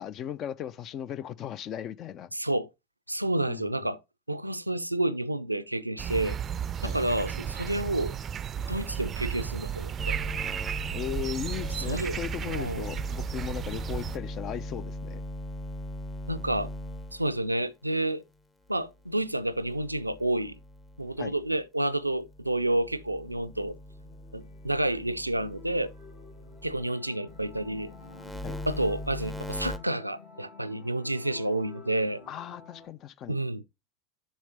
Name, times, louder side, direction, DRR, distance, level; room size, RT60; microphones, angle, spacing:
voice 1, 0.0-2.3 3.5-3.6 6.8-6.9 10.9-15.2 21.2-21.3 28.4-28.6 32.3-33.3, left 10 dB, 40° left, 0.5 m, -37 dB
voice 2, 2.3-2.7 3.1-4.0 4.3-6.4 6.8-8.1 8.7-10.2 11.8-12.2 12.5-12.9 16.3-16.7 17.1-18.2 18.7-20.6 21.0-23.8 24.3-25.9 26.6-27.9 28.7-32.2 33.3-33.6, right 1 dB, 90° right, 0.4 m, -29 dB
sound 1, 6.0-14.2, right 9 dB, 30° right, 0.4 m, -34 dB
sound 2, 10.0-17.5 19.4-21.6 22.1-26.9 27.3-29.8, left 1 dB, 10° left, 0.8 m, -40 dB
sound 3, 23.9-32.9, left 4 dB, 60° left, 2.9 m, -51 dB
7.3 x 6.5 x 3.0 m
figure-of-eight pair, 80°, 0 cm